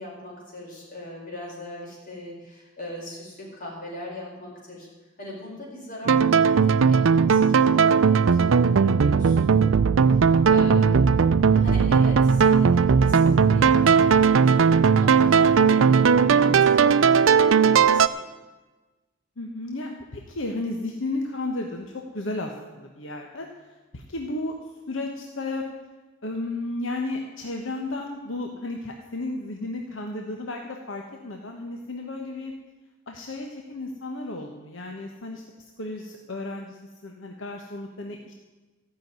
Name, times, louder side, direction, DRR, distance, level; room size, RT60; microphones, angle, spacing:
voice 1, 0.0-4.9 5.2-9.4 10.1-11.1 11.5-18.2, left 1 dB, 45° left, -3 dB, 4.9 m, -39 dB
sound 1, 6.1-18.1, right 6 dB, 85° right, 0.5 m, -18 dB
voice 2, 11.2-11.6 19.4-24.5 24.9-25.7 26.2-32.5 33.1-35.4 35.8-38.3, left 2 dB, 75° left, 2 dB, 1.2 m, -33 dB
14.5 x 6.4 x 9.2 m, 1.2 s
head